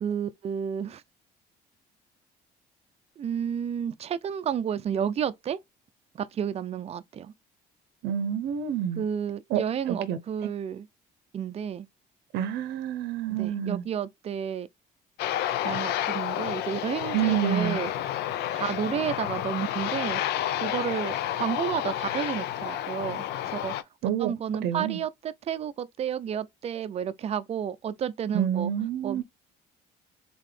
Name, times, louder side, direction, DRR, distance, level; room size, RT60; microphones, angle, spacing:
voice 1, 0.0-1.0 3.2-5.6 6.1-7.3 9.0-10.9 11.3-11.9 13.3-14.7 15.6-17.9 18.5-20.2 20.6-23.2 23.5-23.7 24.0-28.7 29.0-29.2, right 8 dB, 40° right, 0.5 m, -31 dB
voice 2, 8.0-9.0 9.5-9.6 9.9-10.2 12.3-13.8 17.1-17.8 24.0-24.3 24.6-25.0 28.3-29.2, right 9 dB, 85° right, 0.7 m, -28 dB
Aircraft, 15.2-23.8, left 12 dB, 75° left, 0.5 m, -30 dB
3.9 x 3.7 x 3.2 m
cardioid pair, 110°, 17 cm